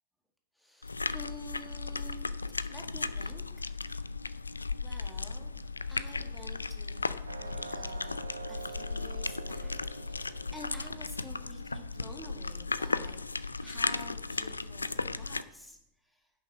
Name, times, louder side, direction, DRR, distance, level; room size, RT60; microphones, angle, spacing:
voice 1, 0.5-2.3 2.7-3.4 4.7-14.9 15.2-16.3, equal, 5° left, 3 dB, 2.1 m, -50 dB
sound 1, 0.8-15.4, left 3 dB, 80° left, 0.4 m, -36 dB
sound 2, 7.3-12.9, right 5 dB, 75° right, 0.8 m, -47 dB
10.5 x 7.0 x 7.2 m, 0.85 s
figure-of-eight pair, 90°, 0 cm